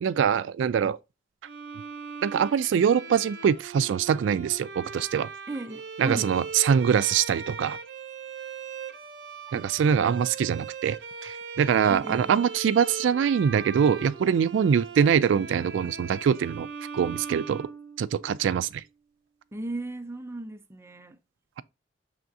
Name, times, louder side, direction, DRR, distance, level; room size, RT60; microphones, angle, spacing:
voice 1, 0.0-1.0 2.2-5.3 6.0-7.8 9.5-11.0 11.2-16.7 16.9-17.7 18.0-18.8, right 7 dB, 80° right, 0.3 m, -23 dB
Bowed string instrument, 1.4-18.4, right 5 dB, 60° right, 0.8 m, -40 dB
voice 2, 5.5-6.3 9.5-9.7 11.9-12.3 19.5-21.2, right 2 dB, 15° right, 0.5 m, -36 dB
5.9 x 3.4 x 2.6 m
head